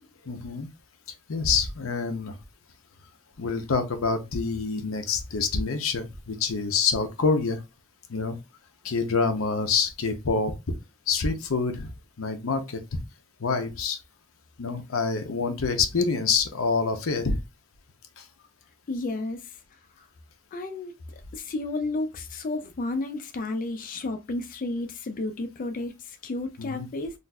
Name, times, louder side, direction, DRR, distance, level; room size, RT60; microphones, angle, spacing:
voice 1, 0.2-0.7 1.3-2.3 3.4-7.6 8.1-8.4 8.8-10.5 11.1-11.9 12.2-13.0 13.4-14.0 14.6-17.4 18.2-18.3 26.6-26.9, left 4 dB, 90° left, 0.7 m, -26 dB
voice 2, 18.9-19.4 20.5-20.9 21.3-25.9 26.2-27.1, left 2 dB, 40° left, 0.4 m, -31 dB
3.9 x 2.5 x 2.3 m
head